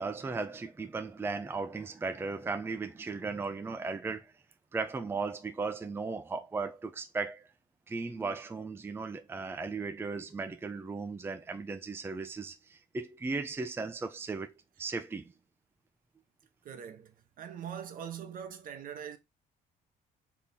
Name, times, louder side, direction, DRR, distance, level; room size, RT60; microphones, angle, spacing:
voice 1, 0.0-4.3 4.7-7.5 7.9-14.5 14.8-15.3, right 4 dB, 15° right, 0.4 m, -36 dB
voice 2, 16.6-19.2, right 8 dB, 55° right, 0.9 m, -42 dB
3.6 x 3.5 x 4.1 m
cardioid pair, 110°, 17 cm